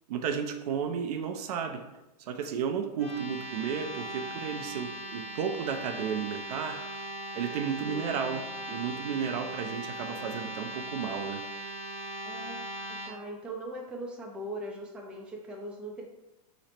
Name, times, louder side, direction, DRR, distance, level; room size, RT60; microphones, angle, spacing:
voice 1, 0.1-1.8 2.2-6.8 7.3-8.4 8.7-11.4, right 7 dB, 70° right, 6 dB, 0.5 m, -33 dB
sound 1, 3.0-13.1, equal, 70° left, 1.2 m, -39 dB
voice 2, 7.8-8.5 12.2-16.0, right 1 dB, 5° right, -1 dB, 0.4 m, -41 dB
3.0 x 2.0 x 4.1 m, 0.98 s
supercardioid pair, 135°, 21 cm